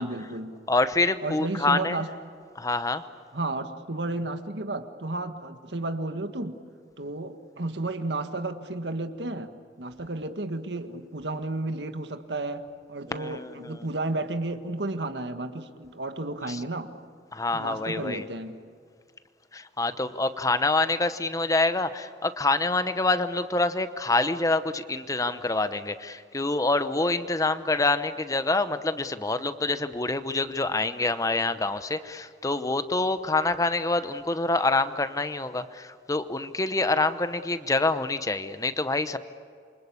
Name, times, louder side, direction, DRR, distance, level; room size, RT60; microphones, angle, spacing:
voice 1, 0.0-0.6 1.2-2.1 3.3-6.6 7.0-16.9 17.5-18.6, right 2 dB, 80° right, 8 dB, 1.7 m, -32 dB
voice 2, 0.7-2.0 2.6-3.0 13.1-13.9 16.5-16.6 17.3-18.2 19.5-39.2, left 2 dB, 20° left, 12 dB, 0.8 m, -26 dB
28.0 x 24.5 x 8.5 m, 2.2 s
head